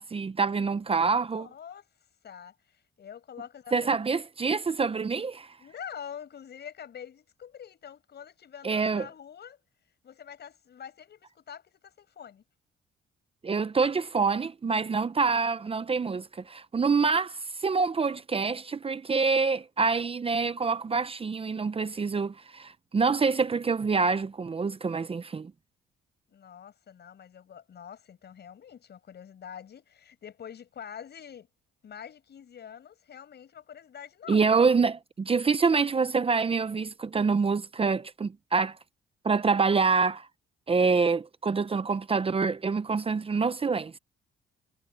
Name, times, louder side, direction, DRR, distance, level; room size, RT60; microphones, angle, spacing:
voice 1, 0.0-1.5 3.7-5.6 8.6-9.1 13.4-25.5 34.3-38.8 39.2-40.3 40.7-44.0, right 4 dB, 30° right, 0.7 m, -26 dB
voice 2, 1.2-1.9 2.2-4.0 5.6-9.6 10.0-12.4 26.3-31.5 31.8-34.7, left 8 dB, 55° left, 7.0 m, -45 dB
cardioid pair, 90°, 20 cm